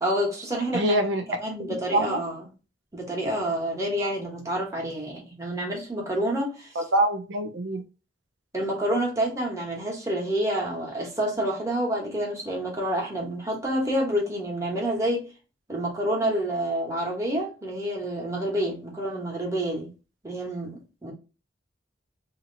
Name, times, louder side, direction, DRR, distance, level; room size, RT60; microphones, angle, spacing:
voice 1, 0.0-1.0 1.4-2.4 2.9-6.7 8.5-15.3 15.7-19.9 20.2-21.1, right 1 dB, 15° right, 1.1 m, -28 dB
voice 2, 0.7-1.2 1.9-2.2 6.8-7.8, right 1 dB, 85° right, 0.7 m, -24 dB
2.9 x 2.8 x 3.8 m
head